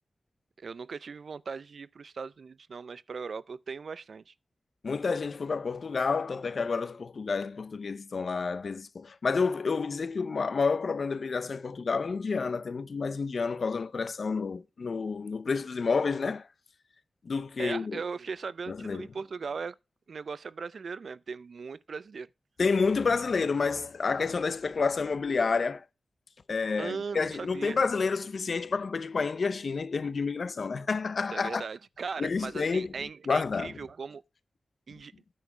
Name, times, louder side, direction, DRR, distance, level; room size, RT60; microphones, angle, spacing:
voice 1, 0.6-4.3 17.6-19.7 20.1-22.3 26.8-27.8 31.3-34.2 34.9-35.1, right 5 dB, 70° right, 0.4 m, -38 dB
voice 2, 4.8-16.5 17.2-18.0 18.7-19.1 22.6-25.8 26.5-31.6 32.2-33.7, left 4 dB, 60° left, 0.6 m, -29 dB
9.4 x 6.1 x 4.7 m
wide cardioid pair, 110°, 0 cm